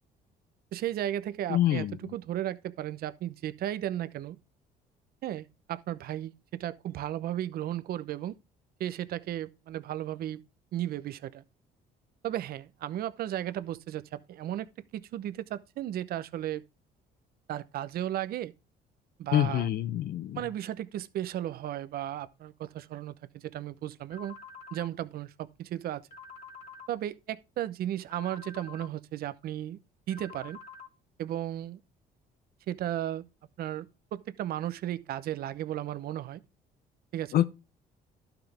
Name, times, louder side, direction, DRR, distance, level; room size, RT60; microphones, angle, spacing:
voice 1, 0.7-4.4 5.2-8.4 8.8-10.4 10.7-11.4 12.2-16.6 17.5-18.5 19.2-19.7 20.4-24.3 24.7-26.0 26.9-29.8 30.1-30.6 31.2-31.8 32.7-33.2 33.6-33.9 34.1-36.4 37.1-37.3, right 12 dB, 65° right, 0.8 m, -35 dB
voice 2, 1.5-2.0 19.3-20.4 37.3-37.5, left 12 dB, 65° left, 0.8 m, -26 dB
sound 1, 24.1-24.9 26.1-26.9 28.1-28.9 30.1-30.9, left 4 dB, 40° left, 2.8 m, -47 dB
12.0 x 5.9 x 3.4 m
cardioid pair, 110°, 17 cm